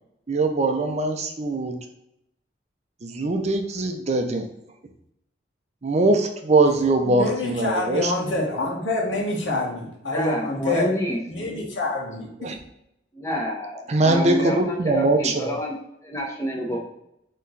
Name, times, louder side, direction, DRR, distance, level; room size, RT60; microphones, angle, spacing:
voice 1, 0.3-1.7 3.0-4.4 5.8-8.5 12.4-12.5 13.9-15.5, right 2 dB, 35° right, 4 dB, 0.6 m, -22 dB
voice 2, 7.0-10.9 11.3-12.6, left 2 dB, 85° left, -1 dB, 1.3 m, -26 dB
voice 3, 10.0-11.2 13.1-15.8 16.0-16.8, equal, 15° left, -2 dB, 1.1 m, -28 dB
4.3 x 3.1 x 3.9 m, 0.80 s
head